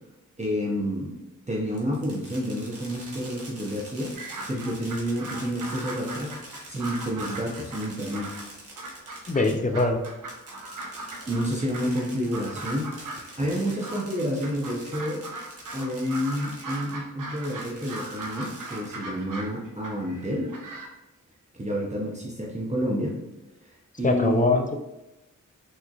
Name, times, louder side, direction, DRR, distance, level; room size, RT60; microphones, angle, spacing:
voice 1, 0.4-1.2 1.5-4.2 4.5-6.4 6.7-8.3 11.3-12.9 13.4-15.2 15.7-20.5 21.5-23.2 24.0-24.5, equal, 20° right, -3 dB, 0.7 m, -29 dB
Fireworks, 1.7-17.0 17.4-19.2, right 2 dB, 45° right, 1.1 m, -45 dB
sound 1, 4.1-8.5 8.8-20.9, right 2 dB, 70° right, 0.6 m, -39 dB
voice 2, 9.3-10.0 24.0-24.8, left 3 dB, 25° left, 5 dB, 0.5 m, -23 dB
3.6 x 3.1 x 2.4 m, 0.99 s
cardioid pair, 45°, 33 cm